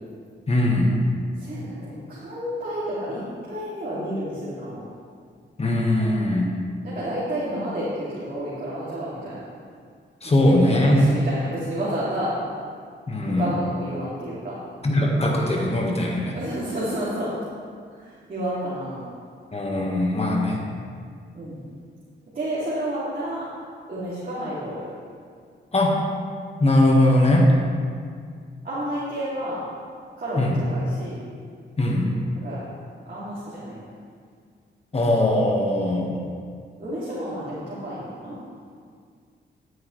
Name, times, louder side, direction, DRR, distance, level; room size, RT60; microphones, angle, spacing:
voice 1, 0.5-1.0 5.6-6.6 10.2-11.1 13.1-13.5 14.8-16.4 19.5-20.6 25.7-26.0 26.6-27.5 30.4-30.6 31.8-32.2 34.9-36.1, left 1 dB, 35° left, -1 dB, 1.5 m, -20 dB
voice 2, 1.4-4.8 6.8-9.4 10.4-12.3 13.3-14.6 16.3-17.3 17.9-19.0 21.3-21.6 22.3-23.5 23.9-24.8 28.6-29.6 30.2-31.2 32.3-32.6 33.1-33.8 36.8-38.3, right 1 dB, 50° right, -10 dB, 2.6 m, -30 dB
11.0 x 9.4 x 3.2 m, 2.1 s
wide cardioid pair, 110°, 20 cm